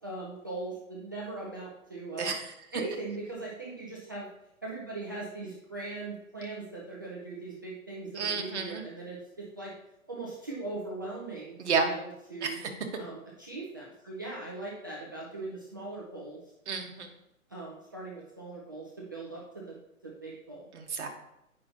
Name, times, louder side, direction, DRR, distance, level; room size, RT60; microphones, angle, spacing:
voice 1, 0.0-2.3 2.7-4.3 4.6-9.7 10.1-12.6 13.0-16.4 17.5-19.8 20.0-20.7, right 3 dB, 15° right, -5 dB, 0.4 m, -40 dB
voice 2, 8.2-8.8 11.6-11.8 12.4-12.5 16.7-17.1 20.7-21.1, right 5 dB, 55° right, 3 dB, 1.3 m, -30 dB
8.4 x 5.5 x 2.7 m, 0.85 s
figure-of-eight pair, 125°, 42 cm